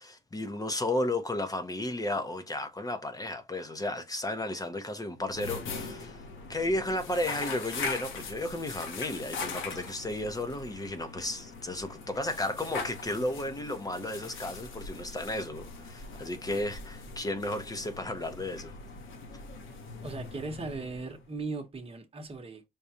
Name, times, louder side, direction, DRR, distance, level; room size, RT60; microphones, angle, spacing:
voice 1, 0.0-6.2 6.5-18.8, left 1 dB, 20° left, 0.7 m, -33 dB
sound 1, 5.2-21.3, left 4 dB, 80° left, 1.0 m, -41 dB
voice 2, 20.0-22.6, right 3 dB, 30° right, 1.0 m, -38 dB
5.0 x 2.3 x 2.8 m
cardioid pair, 90°, 20 cm